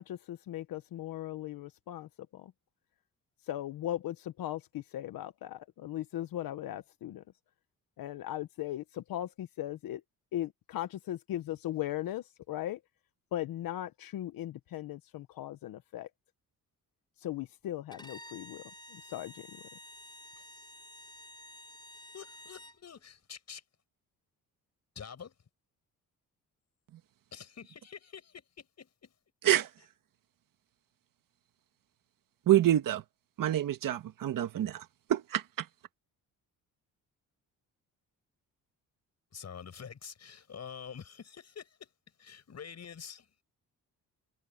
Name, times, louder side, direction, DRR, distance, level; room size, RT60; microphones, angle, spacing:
voice 1, 0.0-2.1 3.5-7.2 8.0-10.0 10.3-12.8 13.3-16.1 17.2-18.6 18.9-19.4, left 13 dB, 75° left, 1.1 m, -38 dB
Bowed string instrument, 17.9-22.8, left 1 dB, 10° left, 5.6 m, -51 dB
voice 2, 22.1-23.6 25.0-25.3 27.3-29.1 39.3-41.9 42.2-43.3, left 7 dB, 50° left, 7.6 m, -47 dB
voice 3, 32.5-33.0 33.4-34.8 35.1-35.7, right 12 dB, 70° right, 1.7 m, -27 dB
cardioid pair, 90°, 35 cm